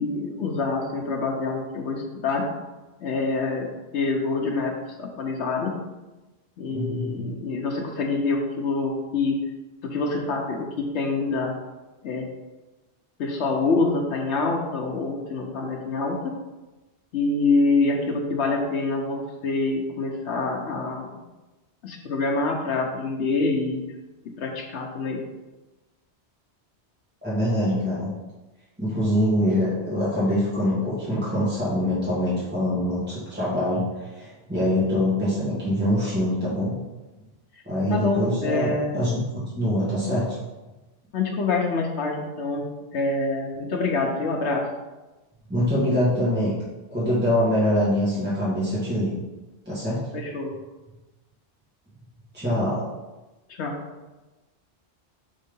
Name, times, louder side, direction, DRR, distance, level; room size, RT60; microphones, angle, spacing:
voice 1, 0.0-2.5 3.0-3.7 3.9-5.8 6.6-9.4 9.8-11.5 12.0-12.3 13.2-16.3 17.1-21.1 21.8-23.8 24.4-25.2 37.9-39.0 41.1-42.6 42.9-44.6 50.1-50.5 53.5-53.8, left 3 dB, 85° left, -1 dB, 1.1 m, -26 dB
voice 2, 6.7-7.3 27.2-28.1 28.8-36.7 37.7-40.4 45.5-46.6 46.9-49.1 49.7-50.1 52.3-52.8, left 1 dB, 10° right, -10 dB, 1.8 m, -24 dB
5.4 x 3.7 x 5.3 m, 1.1 s
omnidirectional pair, 1.1 m